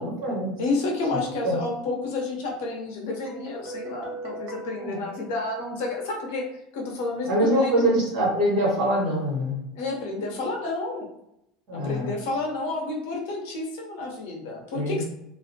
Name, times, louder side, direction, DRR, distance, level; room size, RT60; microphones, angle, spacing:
voice 1, 0.0-0.5 1.1-1.6 4.8-5.0 7.2-9.6 11.7-12.1 14.7-15.0, right 1 dB, 50° right, -3 dB, 1.2 m, -24 dB
voice 2, 0.6-6.4 6.7-7.9 9.7-11.1 11.7-15.0, left 3 dB, 70° left, 0 dB, 0.7 m, -30 dB
Guitar, 3.3-6.0, right 2 dB, 70° right, 0.8 m, -40 dB
2.5 x 2.0 x 2.7 m, 0.83 s
cardioid pair, 175°, 0 cm